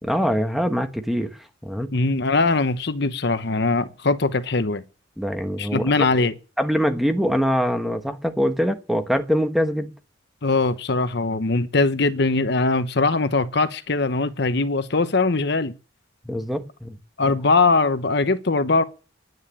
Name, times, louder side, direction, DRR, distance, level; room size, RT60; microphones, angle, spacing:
voice 1, 0.0-1.3 1.6-1.9 5.2-5.9 6.6-9.9 16.2-17.0 17.2-17.3, equal, ahead, 1.3 m, -23 dB
voice 2, 1.9-4.8 5.6-6.3 10.4-15.7 17.2-18.8, left 3 dB, 60° left, 1.0 m, -21 dB
10.0 x 9.3 x 9.9 m
head